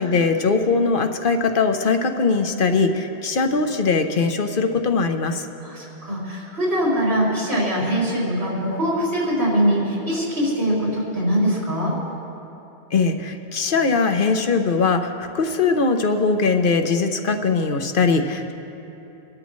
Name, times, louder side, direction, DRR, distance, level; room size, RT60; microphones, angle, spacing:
voice 1, 0.0-5.4 12.9-18.5, left 4 dB, 60° left, 6 dB, 1.0 m, -21 dB
voice 2, 5.6-11.9, equal, 90° right, -7 dB, 4.1 m, -22 dB
26.0 x 12.5 x 3.2 m, 2.9 s
omnidirectional pair, 1.0 m